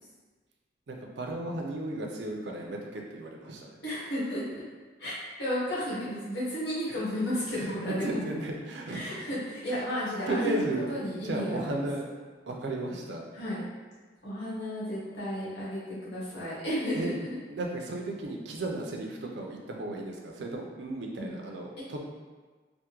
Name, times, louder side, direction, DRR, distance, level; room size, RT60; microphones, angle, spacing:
voice 1, 0.9-3.8 6.9-7.0 7.5-9.2 9.7-9.8 10.3-10.9 11.2-12.1 12.5-13.2 16.9-22.0, right 2 dB, 80° right, 1 dB, 0.5 m, -34 dB
voice 2, 3.8-4.4 5.0-5.1 5.4-8.2 8.9-11.8 13.3-13.7 14.2-17.3 21.2-21.3, equal, 80° left, -9 dB, 1.3 m, -33 dB
3.4 x 2.1 x 2.9 m, 1.4 s
head